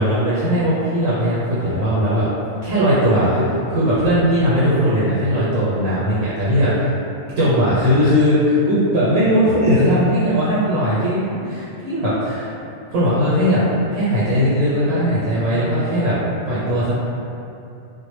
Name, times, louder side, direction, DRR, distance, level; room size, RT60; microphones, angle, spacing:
voice 1, 0.0-2.3 2.6-6.9 7.4-12.5 12.9-13.6 13.9-16.2 16.5-16.9, equal, 85° right, -9 dB, 1.0 m, -18 dB
2.1 x 2.0 x 2.9 m, 2.6 s
omnidirectional pair, 1.3 m